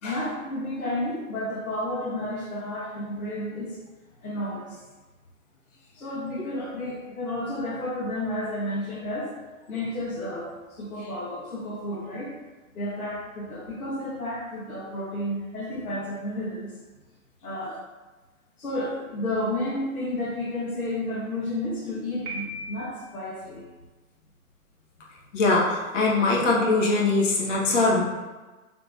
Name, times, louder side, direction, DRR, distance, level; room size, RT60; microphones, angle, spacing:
voice 1, 0.0-3.8 4.2-4.8 5.9-9.4 9.6-12.3 12.7-16.7 17.4-17.8 18.6-23.7, left 1 dB, 85° left, -3 dB, 1.3 m, -31 dB
Piano, 22.3-23.2, right 1 dB, 50° right, 1.4 m, -37 dB
voice 2, 25.3-28.0, left 3 dB, 60° left, -3 dB, 1.4 m, -22 dB
5.7 x 3.6 x 2.6 m, 1.2 s
hypercardioid pair, 120°, 42 cm